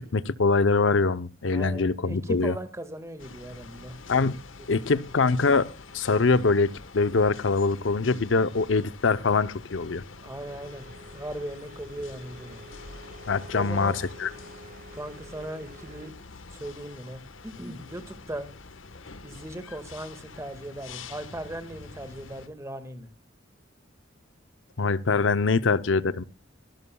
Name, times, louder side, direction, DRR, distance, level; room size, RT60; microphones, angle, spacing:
voice 1, 0.0-2.6 4.1-4.4 4.7-10.0 13.3-14.3 24.8-26.2, left 4 dB, 70° left, 0.7 m, -24 dB
voice 2, 1.5-4.0 4.9-5.0 10.2-12.7 13.5-14.0 14.9-16.1 16.5-18.5 19.2-23.1, right 1 dB, 15° right, 1.8 m, -38 dB
sound 1, 3.2-22.5, left 4 dB, 90° left, 1.3 m, -46 dB
sound 2, 10.4-16.1, right 1 dB, 50° right, 1.7 m, -49 dB
24.0 x 12.5 x 2.3 m
head